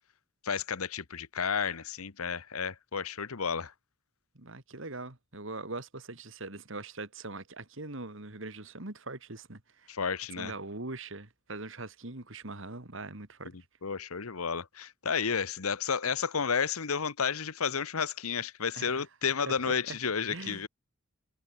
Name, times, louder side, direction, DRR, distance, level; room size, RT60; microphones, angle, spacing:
voice 1, 0.4-3.7 9.9-10.5 13.8-20.7, left 6 dB, 90° left, 1.1 m, -32 dB
voice 2, 4.3-10.0 10.4-13.5 18.8-19.0 19.5-20.0 20.3-20.7, right 2 dB, 60° right, 2.5 m, -42 dB
head